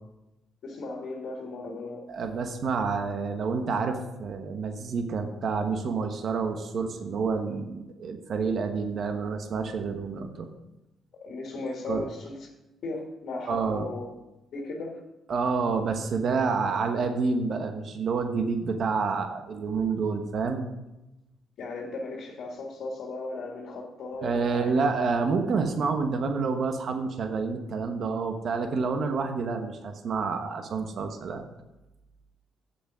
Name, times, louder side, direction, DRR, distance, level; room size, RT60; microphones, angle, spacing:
voice 1, 0.6-2.0 11.2-12.5 12.8-14.1 14.5-15.0 21.6-24.8, left 2 dB, 65° left, 0 dB, 1.8 m, -36 dB
voice 2, 2.1-10.5 11.9-12.1 13.5-13.8 15.3-20.7 24.2-31.4, right 4 dB, 60° right, 6 dB, 1.1 m, -28 dB
8.2 x 6.8 x 6.1 m, 0.95 s
cardioid pair, 90°, 0 cm